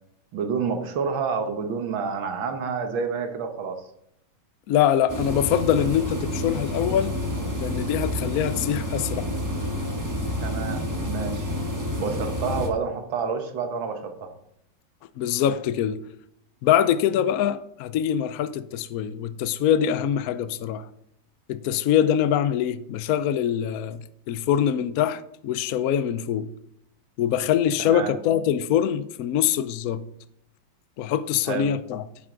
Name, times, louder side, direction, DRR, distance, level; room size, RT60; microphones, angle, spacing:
voice 1, 0.3-3.9 10.4-11.5 12.0-14.3 27.8-28.1 31.5-31.7, right 5 dB, 75° right, 2.0 m, -29 dB
voice 2, 4.7-7.2 7.6-9.3 15.2-16.0 16.6-20.9 21.5-26.5 27.2-30.0 31.0-32.0, left 9 dB, 75° left, 0.8 m, -24 dB
sound 1, 5.1-12.7, left 1 dB, 10° right, 1.1 m, -29 dB
10.5 x 7.8 x 3.8 m
omnidirectional pair, 2.2 m